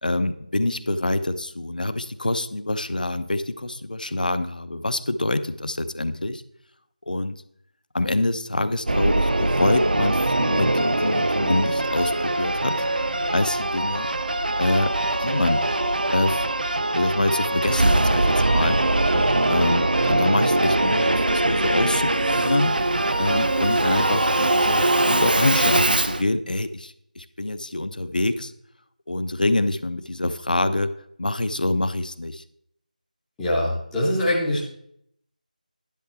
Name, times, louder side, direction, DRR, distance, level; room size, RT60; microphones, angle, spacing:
voice 1, 0.0-6.4 7.1-7.4 7.9-12.8 13.3-14.1 14.6-14.9 15.2-15.6 16.1-16.4 16.9-18.8 19.5-22.7 23.2-28.5 29.1-30.9 31.2-32.4, left 2 dB, 70° left, 11 dB, 0.8 m, -25 dB
Singing / Musical instrument, 8.9-26.2, right 2 dB, 85° right, 0.7 m, -22 dB
voice 2, 33.4-34.6, left 1 dB, ahead, -9 dB, 0.5 m, -23 dB
10.5 x 6.7 x 4.2 m, 0.71 s
figure-of-eight pair, 180°, 5 cm